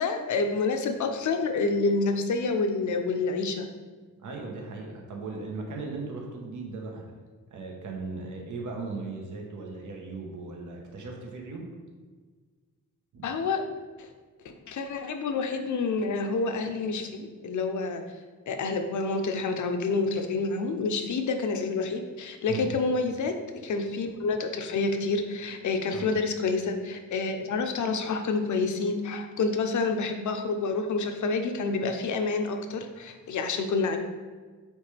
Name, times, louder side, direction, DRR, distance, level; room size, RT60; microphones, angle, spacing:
voice 1, 0.0-3.7 13.2-13.6 14.0-14.1 14.4-18.0 18.5-23.3 23.6-34.0, left 3 dB, 60° left, 6 dB, 0.7 m, -28 dB
voice 2, 4.2-7.0 7.5-11.7 13.1-13.4 22.5-22.7 25.9-26.1, right 3 dB, 65° right, 0 dB, 1.1 m, -37 dB
8.8 x 3.3 x 3.4 m, 1.4 s
wide cardioid pair, 130°, 33 cm